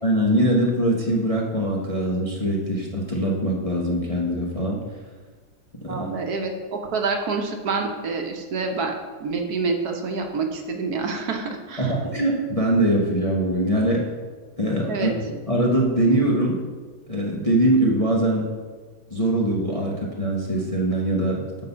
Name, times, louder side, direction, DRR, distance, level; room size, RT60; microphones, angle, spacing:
voice 1, 0.0-4.8 5.8-6.1 11.8-14.1 14.6-16.6 17.1-18.4 19.1-21.4, right 1 dB, 25° left, -2 dB, 0.8 m, -22 dB
voice 2, 5.9-8.9 9.2-12.0 14.9-15.1, right 4 dB, 65° right, 3 dB, 1.4 m, -27 dB
8.9 x 4.1 x 6.8 m, 1.4 s
omnidirectional pair, 1.9 m